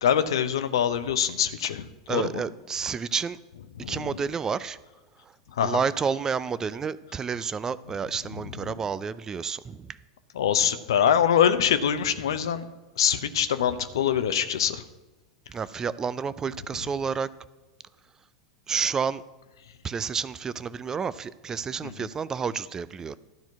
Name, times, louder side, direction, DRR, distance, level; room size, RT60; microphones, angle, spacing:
voice 1, 0.0-2.4 3.8-4.1 5.5-5.8 10.3-12.7 13.0-14.8 21.8-22.1, left 9 dB, 70° left, 11 dB, 0.7 m, -24 dB
voice 2, 2.1-3.4 3.9-4.8 5.2-5.4 5.6-10.0 15.5-17.3 18.7-19.2 19.8-23.2, right 6 dB, 20° right, 17 dB, 0.5 m, -30 dB
12.5 x 4.4 x 8.4 m, 1.2 s
figure-of-eight pair, 90°, 3 cm